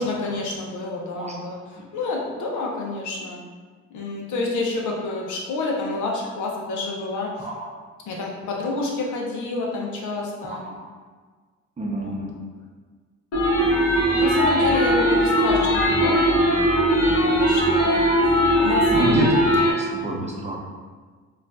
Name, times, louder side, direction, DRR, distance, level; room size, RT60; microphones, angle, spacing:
voice 1, 0.0-3.4 3.9-7.3 8.1-10.6 12.0-12.2 14.0-16.4 16.8-19.5, left 3 dB, 75° left, -2 dB, 0.8 m, -29 dB
voice 2, 1.1-1.5 1.7-1.8 7.4-7.7 10.4-10.9 11.8-12.3 18.9-20.6, right 2 dB, 20° right, -2 dB, 0.6 m, -28 dB
sound 1, 13.3-19.7, equal, 55° left, 1.4 m, -19 dB
4.3 x 2.5 x 2.5 m, 1.5 s
cardioid pair, 90°, 30 cm